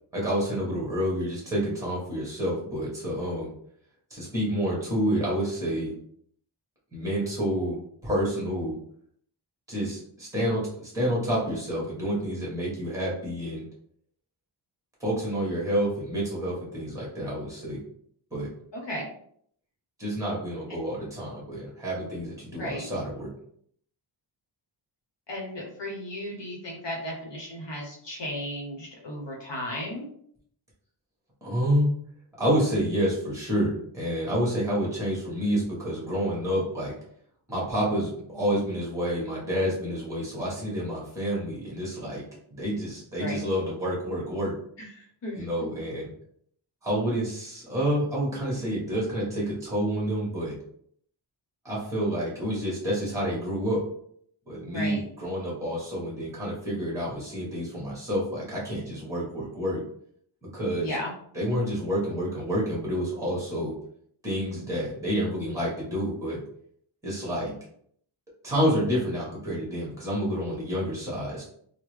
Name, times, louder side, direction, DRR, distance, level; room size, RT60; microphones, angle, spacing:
voice 1, 0.1-3.5 4.1-5.9 6.9-8.7 9.7-13.6 15.0-17.8 18.3-18.5 20.0-23.3 31.4-31.9 32.4-36.9 37.5-42.2 42.5-44.6 45.3-46.1 46.8-50.6 51.6-53.8 54.5-59.8 60.4-60.9 61.3-63.7 64.2-66.4 67.0-67.5 68.4-71.4, equal, 5° right, -5 dB, 1.4 m, -28 dB
voice 2, 18.7-19.1 20.7-20.8 22.6-22.8 25.3-30.1 43.2-43.4 44.8-45.5 54.6-55.0 60.8-61.1, left 1 dB, 60° left, -1 dB, 1.0 m, -35 dB
3.6 x 2.1 x 3.2 m, 0.65 s
wide cardioid pair, 110°, 48 cm